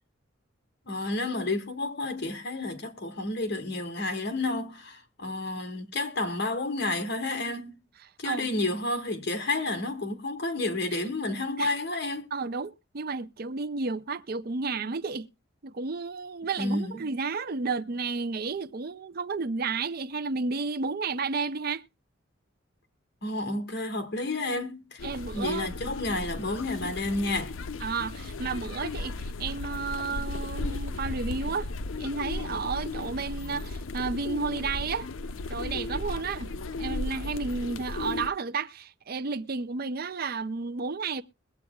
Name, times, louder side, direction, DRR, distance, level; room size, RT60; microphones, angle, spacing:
voice 1, 0.9-7.7 8.2-12.3 16.6-17.1 23.2-25.0 25.3-27.5, left 2 dB, 55° left, 1.8 m, -30 dB
voice 2, 12.3-15.3 15.6-21.8 25.0-25.9 27.8-31.7 32.0-35.1 35.5-36.5 36.8-41.2, right 4 dB, 50° right, 0.5 m, -32 dB
sound 1, 25.0-38.3, left 2 dB, 90° left, 0.6 m, -35 dB
21.5 x 8.2 x 2.3 m
head